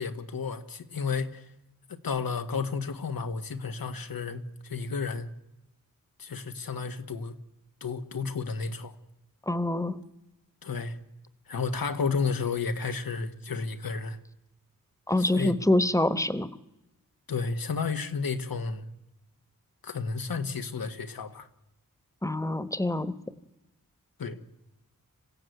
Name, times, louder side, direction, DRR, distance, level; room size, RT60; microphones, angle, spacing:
voice 1, 0.0-1.5 1.9-5.3 6.2-7.3 7.8-8.9 10.6-11.0 11.5-14.2 15.2-15.6 17.3-18.8 19.8-21.5 24.2-24.4, left 5 dB, 85° left, 1.7 m, -32 dB
voice 2, 9.5-10.0 15.1-16.5 22.2-23.1, left 1 dB, 10° left, 1.3 m, -25 dB
26.5 x 16.0 x 9.4 m
wide cardioid pair, 75°, 34 cm